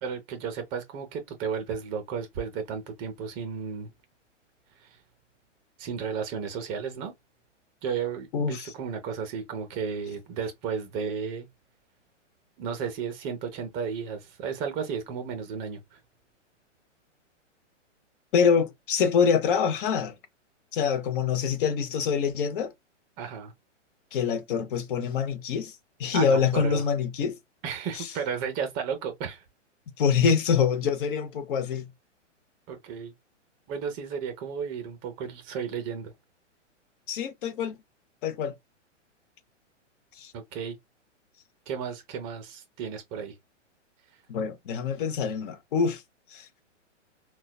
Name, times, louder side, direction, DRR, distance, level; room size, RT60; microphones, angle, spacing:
voice 1, 0.0-3.9 4.8-5.0 5.8-7.1 7.8-11.5 12.6-16.0 23.2-23.5 26.1-26.8 27.6-29.4 32.7-33.1 33.7-36.1 40.3-40.8 41.7-43.3, right 6 dB, 30° right, 0.6 m, -33 dB
voice 2, 8.3-8.7 18.3-20.1 20.7-22.7 24.1-25.7 26.0-27.4 28.0-28.1 30.0-31.8 37.1-37.8 38.2-38.5 40.2-40.3 44.3-46.0 46.3-46.5, left 6 dB, 45° left, 0.7 m, -25 dB
3.9 x 2.2 x 2.2 m
hypercardioid pair, 130°, 37 cm